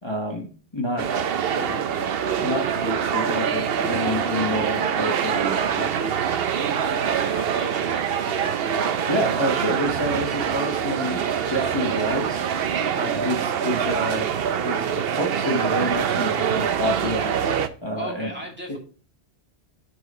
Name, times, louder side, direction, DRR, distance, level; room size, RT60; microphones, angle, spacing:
voice 1, 0.0-0.5 0.7-1.1 1.5-2.1 2.4-6.1 9.1-12.4 12.9-14.3 14.6-17.3 17.8-18.3 18.7-18.8, equal, 25° left, 1 dB, 1.1 m, -28 dB
sound 1, 1.0-17.7, right 8 dB, 65° right, 0.9 m, -24 dB
voice 2, 7.0-9.0 17.9-18.8, equal, 10° right, -2 dB, 2.2 m, -37 dB
8.1 x 4.8 x 4.2 m, 0.38 s
omnidirectional pair, 1.1 m